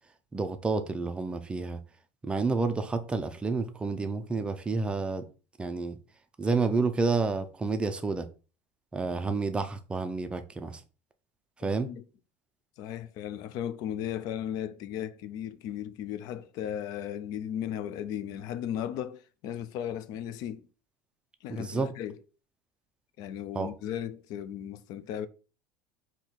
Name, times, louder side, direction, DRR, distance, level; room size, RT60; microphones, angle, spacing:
voice 1, 0.3-1.8 2.2-5.3 5.6-6.0 6.4-8.3 8.9-10.8 11.6-11.9 21.5-21.9 23.5-23.7, right 4 dB, 15° right, 0.4 m, -29 dB
voice 2, 11.6-12.0 12.8-20.6 21.4-22.2 23.2-25.3, left 10 dB, 55° left, 0.4 m, -36 dB
4.0 x 2.9 x 4.5 m
cardioid pair, 145°, 8 cm